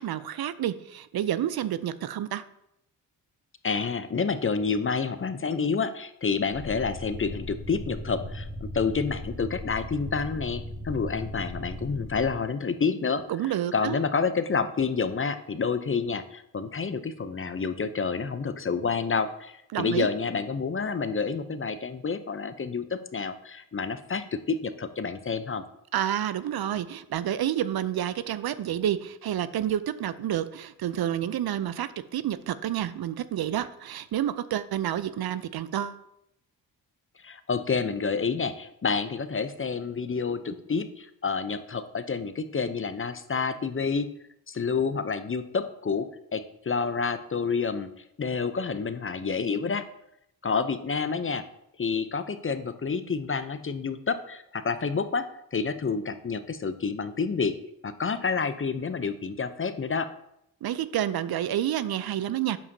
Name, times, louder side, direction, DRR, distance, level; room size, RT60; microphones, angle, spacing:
voice 1, 0.0-2.4 13.3-14.0 19.7-20.1 25.9-36.0 60.6-62.6, right 11 dB, 55° right, 14 dB, 0.5 m, -29 dB
voice 2, 3.6-13.2 13.7-25.6 37.2-44.1 44.5-47.9 48.2-49.8 50.4-51.5 51.8-57.6 57.8-60.1, left 5 dB, 30° left, 11 dB, 0.6 m, -29 dB
sound 1, 6.5-12.3, left 1 dB, 45° left, 2.2 m, -38 dB
8.3 x 7.1 x 2.7 m, 0.80 s
supercardioid pair, 45°, 44 cm